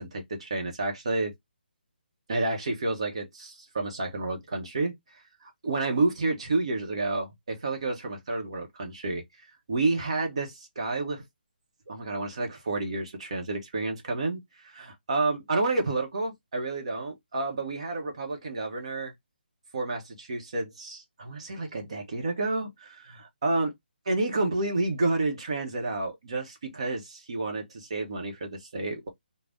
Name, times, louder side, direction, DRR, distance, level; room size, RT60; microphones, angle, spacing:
voice 1, 0.0-1.3 2.3-4.9 5.4-9.2 9.7-11.2 11.9-19.1 19.7-23.7 24.1-29.1, right 2 dB, 35° right, 0.8 m, -30 dB
2.5 x 2.0 x 3.3 m
hypercardioid pair, 180°, 6 cm